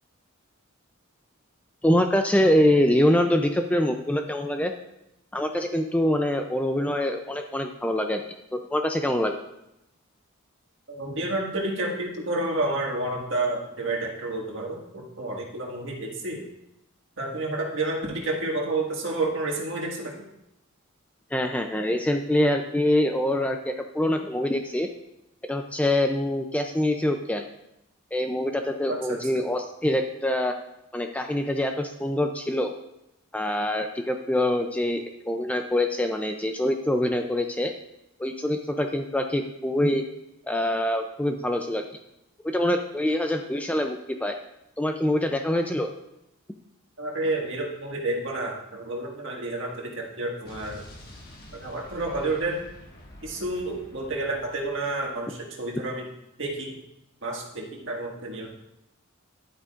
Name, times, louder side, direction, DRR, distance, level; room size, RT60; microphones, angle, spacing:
voice 1, 1.8-4.7 5.3-8.2 8.5-9.4 21.3-24.9 25.5-27.5 28.1-30.6 30.9-32.7 33.3-37.7 38.2-40.0 40.5-41.8 42.4-44.4 44.8-45.9, left 1 dB, 5° left, 5 dB, 0.4 m, -25 dB
voice 2, 10.9-16.4 17.2-20.1 28.9-29.2 47.0-50.8 51.5-52.6 53.2-56.0 56.4-56.7 57.2-58.5, right 2 dB, 60° right, -1 dB, 1.7 m, -30 dB
Explosion, 50.4-55.2, left 1 dB, 45° left, 1.6 m, -47 dB
11.0 x 8.8 x 2.4 m, 0.86 s
head